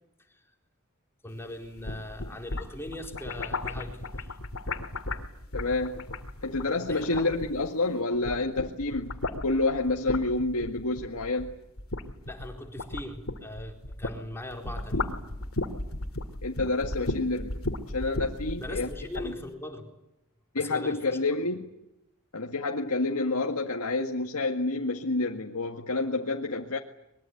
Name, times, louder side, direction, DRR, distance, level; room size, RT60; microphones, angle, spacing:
voice 1, 1.2-4.4 6.8-7.6 12.3-15.2 18.6-19.9 20.5-21.3, left 1 dB, 10° left, 2 dB, 4.2 m, -40 dB
sound 1, 1.6-7.9 8.1-14.2 14.5-19.3, left 2 dB, 75° left, 2.6 m, -35 dB
voice 2, 5.5-6.1 6.4-11.5 16.4-17.6 17.9-18.9 19.2-19.3 20.5-21.6 22.3-26.8, left 2 dB, 90° left, 1 dB, 1.9 m, -29 dB
24.0 x 22.5 x 9.3 m, 0.83 s
head